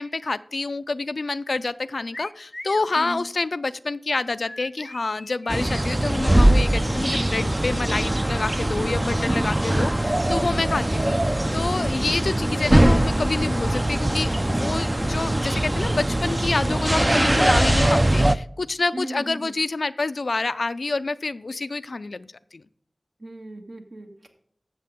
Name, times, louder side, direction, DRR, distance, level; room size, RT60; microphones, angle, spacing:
voice 1, 0.0-22.6, left 3 dB, 90° left, 14 dB, 0.4 m, -28 dB
sound 1, 2.1-2.9 4.4-5.9, left 1 dB, 35° left, 0.5 m, -40 dB
sound 2, 5.5-18.3, right 1 dB, 25° right, 0.4 m, -21 dB
voice 2, 18.9-19.6 23.2-24.3, right 1 dB, 70° right, 2 dB, 1.9 m, -36 dB
12.5 x 7.6 x 3.6 m, 0.66 s
wide cardioid pair, 50°, 0 cm